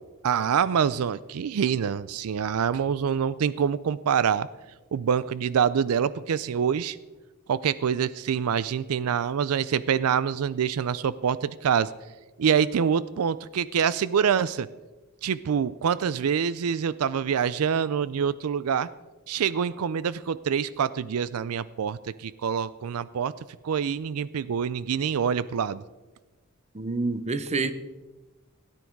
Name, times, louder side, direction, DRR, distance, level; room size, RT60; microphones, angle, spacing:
voice 1, 0.2-4.5 4.9-7.0 7.5-11.9 12.4-14.7 15.2-18.9 19.3-23.3 23.6-25.8, right 7 dB, 85° right, 0.4 m, -26 dB
voice 2, 26.7-27.7, right 3 dB, 30° right, 0.7 m, -27 dB
17.0 x 9.5 x 4.6 m
head